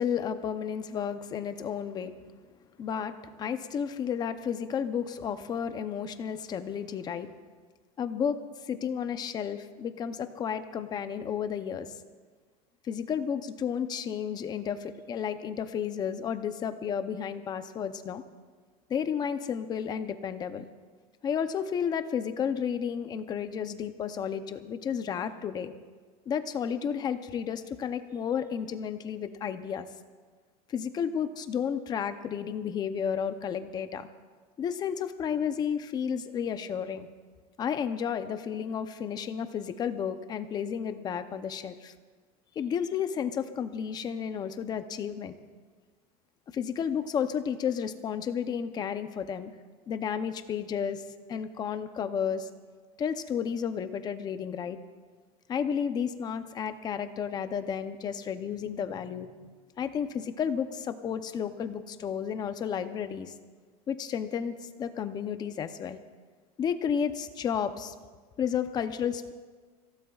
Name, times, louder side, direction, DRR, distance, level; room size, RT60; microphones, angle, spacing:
voice 1, 0.0-2.1 2.8-7.3 8.0-8.4 8.7-11.9 12.8-18.2 18.9-20.6 21.2-25.7 26.3-29.9 30.7-34.1 34.6-37.1 37.6-41.9 42.6-45.3 46.5-49.5 49.9-51.0 51.3-52.5 53.0-54.8 55.5-59.3 59.8-63.3 63.9-66.0 66.6-67.9 68.4-69.3, left 7 dB, 20° left, 10 dB, 0.6 m, -32 dB
26.0 x 16.5 x 2.4 m, 1.5 s
supercardioid pair, 160°, 19 cm